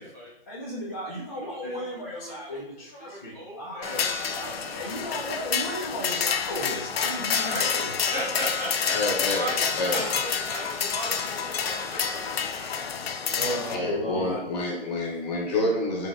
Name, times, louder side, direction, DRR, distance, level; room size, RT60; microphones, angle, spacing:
voice 1, 0.5-4.0 4.3-7.9 13.3-14.4 15.6-16.0, left 1 dB, 20° left, -8 dB, 0.4 m, -35 dB
voice 2, 1.2-2.6 3.0-5.1 7.4-13.8, right 1 dB, 20° right, -6 dB, 0.8 m, -38 dB
sound 1, 3.8-13.7, left 6 dB, 80° left, 0.6 m, -28 dB
voice 3, 8.9-9.5 9.8-10.1 13.7-16.1, left 2 dB, 45° left, -3 dB, 1.5 m, -28 dB
4.8 x 4.0 x 2.2 m, 0.97 s
hypercardioid pair, 170°, 30 cm